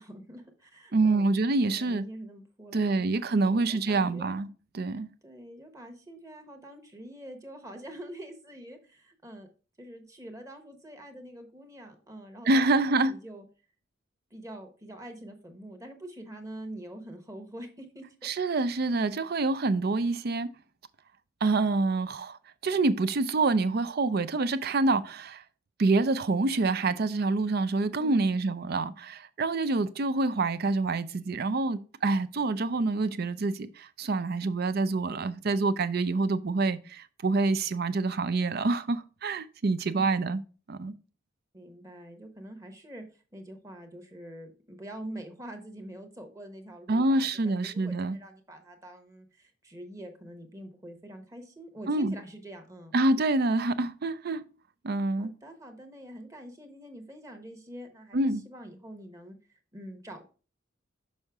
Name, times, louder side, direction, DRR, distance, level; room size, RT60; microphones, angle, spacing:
voice 1, 0.0-1.2 1.8-3.1 3.4-4.4 5.2-9.5 9.8-13.4 14.3-18.3 28.0-28.4 39.9-40.3 41.5-52.9 55.2-60.2, right 1 dB, 15° right, 1.1 m, -45 dB
voice 2, 0.9-2.0 2.7-4.5 4.7-5.1 12.5-13.1 18.2-20.5 21.4-22.4 22.6-25.4 25.8-40.4 40.7-40.9 46.9-48.2 51.9-52.1 52.9-54.4 54.8-55.3 58.1-58.4, right 3 dB, 50° right, 0.5 m, -26 dB
6.4 x 5.4 x 3.5 m
head